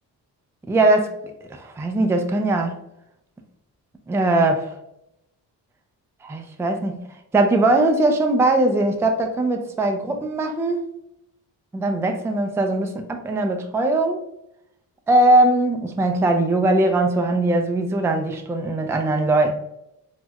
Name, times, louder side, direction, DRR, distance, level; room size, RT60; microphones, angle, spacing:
voice 1, 0.7-1.2 1.5-2.7 4.1-4.7 6.2-7.0 7.3-10.9 11.7-14.2 15.1-19.5, right 2 dB, 5° right, 0.4 m, -20 dB
4.4 x 2.1 x 2.3 m
supercardioid pair, 50°, 43 cm